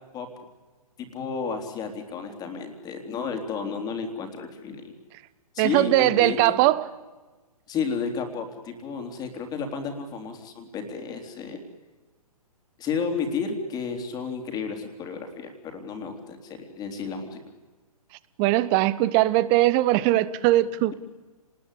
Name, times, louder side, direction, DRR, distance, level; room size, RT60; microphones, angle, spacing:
voice 1, 1.0-5.0 5.5-6.6 7.7-11.6 12.8-17.4, left 5 dB, 20° left, 3.6 m, -32 dB
voice 2, 5.6-6.9 18.4-20.9, right 16 dB, 25° right, 1.1 m, -20 dB
30.0 x 20.5 x 8.5 m
figure-of-eight pair, 125°, 20 cm